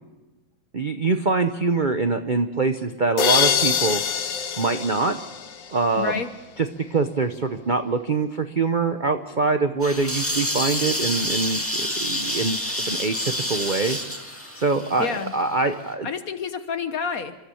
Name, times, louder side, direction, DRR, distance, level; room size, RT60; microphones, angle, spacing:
voice 1, 0.7-4.0 4.6-5.2 5.7-6.2 6.6-14.0 14.6-16.1, right 3 dB, 45° right, 7 dB, 0.6 m, -24 dB
sound 1, 3.2-6.0, left 7 dB, 70° left, 1.7 m, -24 dB
voice 2, 6.0-6.3 15.0-15.3 16.0-17.4, left 6 dB, 55° left, 9 dB, 1.4 m, -28 dB
sound 2, 9.8-15.6, left 1 dB, 5° left, 1.9 m, -28 dB
30.0 x 13.5 x 7.0 m, 1.1 s
omnidirectional pair, 2.1 m